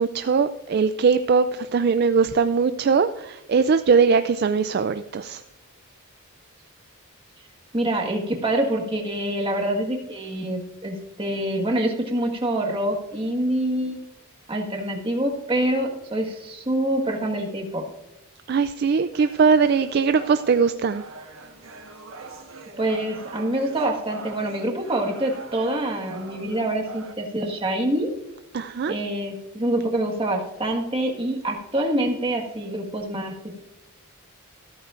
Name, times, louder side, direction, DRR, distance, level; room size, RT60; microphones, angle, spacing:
voice 1, 0.0-5.4 18.5-21.0 28.5-28.9, right 5 dB, 50° right, 10 dB, 0.3 m, -21 dB
voice 2, 7.7-14.0 14.5-17.9 22.8-28.1 28.9-33.6, right 1 dB, 25° right, 1 dB, 1.6 m, -26 dB
sound 1, 19.1-27.1, right 3 dB, 70° right, 1.4 m, -43 dB
14.5 x 13.5 x 2.5 m, 0.96 s
head